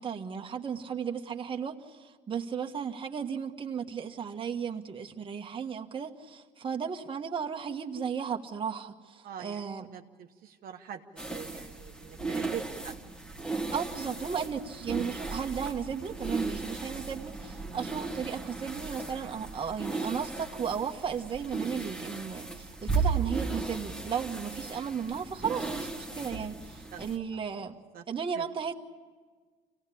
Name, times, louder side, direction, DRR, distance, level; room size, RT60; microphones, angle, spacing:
voice 1, 0.0-9.9 13.7-27.8 28.1-28.7, right 7 dB, 30° right, 2 dB, 1.4 m, -35 dB
voice 2, 9.2-11.0 11.3-13.0 26.9-27.0 27.3-27.6 27.9-28.1 28.3-28.5, right 9 dB, 60° right, 3 dB, 1.0 m, -43 dB
sound 1, 11.2-27.2, right 4 dB, 5° left, 1.8 m, -36 dB
25.0 x 17.5 x 8.4 m, 1.5 s
cardioid pair, 110°, 17 cm